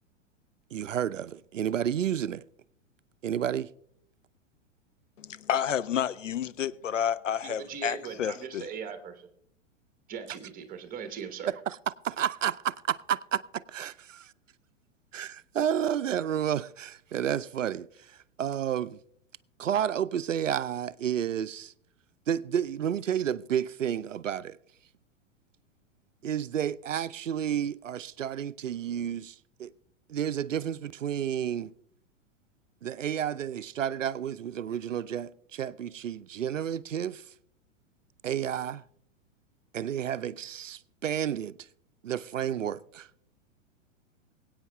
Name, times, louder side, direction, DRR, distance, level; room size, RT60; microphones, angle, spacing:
voice 1, 0.7-2.4 3.2-3.7 11.4-11.8 12.0-14.3 15.1-19.0 19.6-21.7 22.3-24.6 26.2-29.7 30.1-31.7 32.8-37.2 38.2-38.8 39.7-41.7 42.0-43.1, right 9 dB, 80° right, 0.5 m, -31 dB
voice 2, 5.2-8.7, left 9 dB, 80° left, 0.6 m, -30 dB
voice 3, 7.4-9.3 10.1-11.6, right 7 dB, 20° right, 1.2 m, -39 dB
23.5 x 8.7 x 2.3 m
figure-of-eight pair, 100°, 37 cm